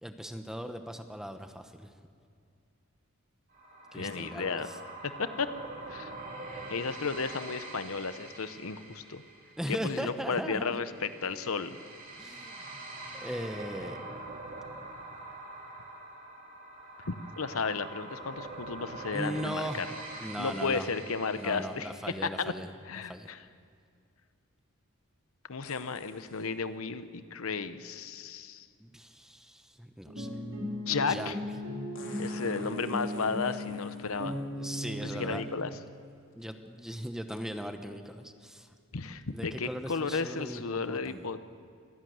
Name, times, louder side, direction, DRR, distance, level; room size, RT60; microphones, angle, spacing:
voice 1, 0.0-1.9 3.9-4.8 9.6-10.8 12.2-12.7 13.1-14.0 19.1-19.9 20.2-20.9 21.3-22.7 23.1-23.3 28.8-30.3 31.1-31.3 34.6-35.4 36.3-38.7 39.3-41.3, equal, ahead, 7 dB, 1.0 m, -38 dB
sound 1, 3.5-22.2, right 2 dB, 40° right, 3.3 m, -45 dB
voice 2, 3.9-4.7 5.0-5.5 5.9-6.1 6.7-9.2 9.7-11.8 17.1-19.9 20.4-21.9 22.2-22.5 22.9-23.4 25.5-28.7 30.9-31.4 32.2-34.4 35.1-35.7 38.9-41.4, left 4 dB, 80° left, 12 dB, 0.9 m, -33 dB
sound 2, 25.6-26.5 28.5-28.6 31.9-34.4 35.4-35.5 36.1-36.4 37.4-37.5, left 4 dB, 65° left, 3.1 m, -51 dB
sound 3, 30.1-35.5, left 1 dB, 60° right, 4.1 m, -37 dB
25.0 x 11.5 x 9.5 m, 2.2 s
head